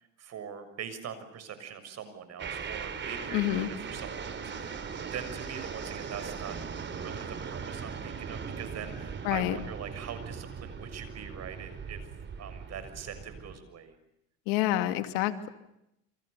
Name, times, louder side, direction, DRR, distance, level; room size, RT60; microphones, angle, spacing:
voice 1, 0.0-6.5 6.9-12.1 12.4-14.0, right 8 dB, 50° right, 11 dB, 6.6 m, -42 dB
sound 1, 2.4-13.6, right 6 dB, 35° right, 3.5 m, -39 dB
voice 2, 3.3-3.7 9.2-9.6 14.5-15.5, left 14 dB, 85° left, 9 dB, 2.5 m, -28 dB
29.0 x 27.0 x 6.9 m, 0.82 s
cardioid pair, 110°, 33 cm